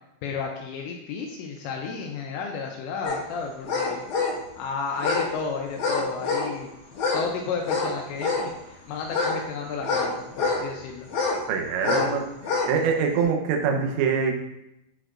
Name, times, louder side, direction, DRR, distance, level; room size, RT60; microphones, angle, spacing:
voice 1, 0.2-4.0 4.6-6.7 7.1-11.1 11.8-12.1, left 5 dB, 85° left, 1 dB, 2.5 m, -32 dB
sound 1, 3.0-3.2 3.7-4.4 5.0-5.3 5.8-6.5 6.9-7.3 7.6-8.5 9.1-10.6 11.1-11.4 11.8-12.1 12.4-12.7 13.2-13.3, left 3 dB, 65° left, 1.9 m, -26 dB
voice 2, 11.5-12.2 12.7-14.3, right 6 dB, 75° right, 2 dB, 2.9 m, -24 dB
12.5 x 4.4 x 2.5 m, 0.85 s
omnidirectional pair, 5.7 m